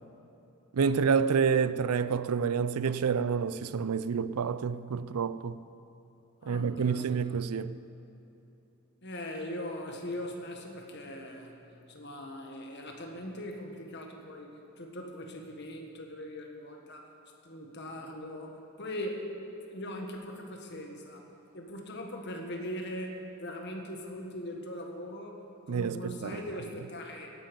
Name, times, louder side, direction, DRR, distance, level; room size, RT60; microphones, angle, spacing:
voice 1, 0.7-5.6 6.4-7.8 25.7-26.4, right 6 dB, 85° right, 0.5 m, -28 dB
voice 2, 6.4-7.1 9.0-11.6 11.9-17.1 17.4-19.3 19.7-21.3 21.5-25.4 25.7-27.3, left 1 dB, 50° left, 1.6 m, -40 dB
17.5 x 10.5 x 5.3 m
head